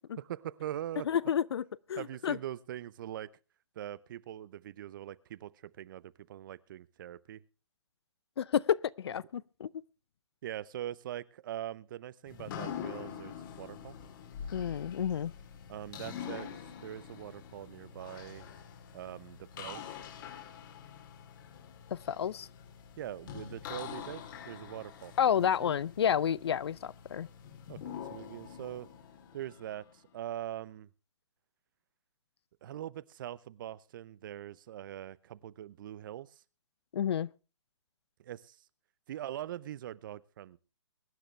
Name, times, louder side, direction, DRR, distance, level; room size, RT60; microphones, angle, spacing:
voice 1, 0.2-1.1 2.0-3.3 3.8-7.4 10.4-13.9 15.7-16.5 16.8-18.4 18.9-20.0 23.0-25.1 25.4-25.7 27.7-28.9 29.3-30.9 32.6-36.4 38.2-38.6 39.1-40.6, right 12 dB, 45° right, 0.7 m, -42 dB
voice 2, 1.1-1.6 1.9-2.4 8.4-9.7 14.5-15.3 21.9-22.5 25.2-27.3 36.9-37.3, left 8 dB, 60° left, 0.6 m, -30 dB
sound 1, 12.3-30.1, left 8 dB, 45° left, 2.6 m, -45 dB
23.0 x 10.0 x 3.3 m
hypercardioid pair, 135°, 15 cm